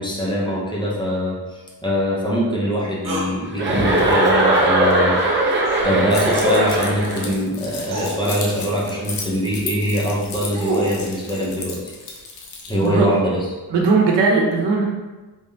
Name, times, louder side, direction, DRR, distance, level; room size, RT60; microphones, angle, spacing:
voice 1, 0.0-5.5 5.8-11.8 12.7-13.3, equal, 10° left, -6 dB, 0.6 m, -23 dB
sound 1, 3.0-3.3 5.6-5.9 7.2-7.3 7.9-8.2 10.1-11.0, right 2 dB, 50° right, 0.8 m, -26 dB
Chuckle chortle, 3.6-7.3, right 1 dB, 30° right, 0.5 m, -19 dB
Keys jangling, 6.1-12.9, left 4 dB, 75° left, 0.7 m, -34 dB
voice 2, 12.8-13.1 13.7-14.9, right 4 dB, 90° right, -1 dB, 0.9 m, -17 dB
3.5 x 3.3 x 2.7 m, 1.2 s
wide cardioid pair, 175°, 41 cm